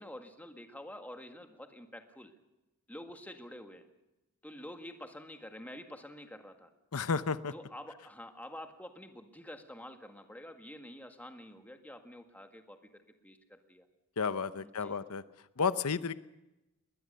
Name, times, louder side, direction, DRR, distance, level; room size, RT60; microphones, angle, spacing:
voice 1, 0.0-2.3 2.9-3.9 4.4-6.7 7.5-13.9 14.6-15.0, left 1 dB, 5° left, 5 dB, 1.8 m, -48 dB
voice 2, 6.9-7.5 14.2-15.2 15.6-16.1, left 5 dB, 90° left, 14 dB, 0.8 m, -32 dB
21.0 x 20.5 x 6.7 m, 0.97 s
head